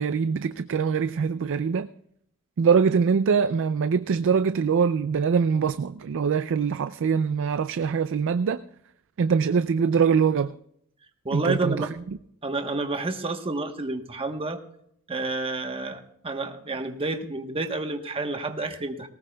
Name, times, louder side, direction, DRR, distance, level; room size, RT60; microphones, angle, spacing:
voice 1, 0.0-1.9 2.6-8.6 9.2-10.5 11.3-11.9, right 6 dB, 60° right, 0.4 m, -23 dB
voice 2, 11.2-11.9 12.4-14.6 15.1-19.1, right 2 dB, 25° right, 1.1 m, -29 dB
19.0 x 18.5 x 2.3 m
head